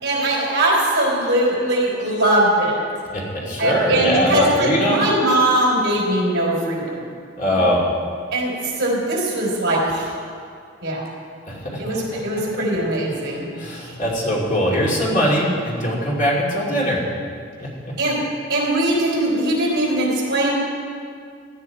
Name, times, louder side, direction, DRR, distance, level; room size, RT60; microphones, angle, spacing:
voice 1, 0.0-2.9 3.3-7.0 7.5-7.7 8.3-8.5 8.8-10.1 10.8-11.0 11.8-13.5 13.9-14.0 18.0-18.2 18.5-20.5, right 1 dB, 55° right, -2 dB, 4.1 m, -20 dB
voice 2, 3.1-5.1 7.4-7.8 11.5-11.6 13.6-17.0 17.6-17.9, equal, 40° left, -4 dB, 2.7 m, -21 dB
16.5 x 12.0 x 4.7 m, 2.2 s
head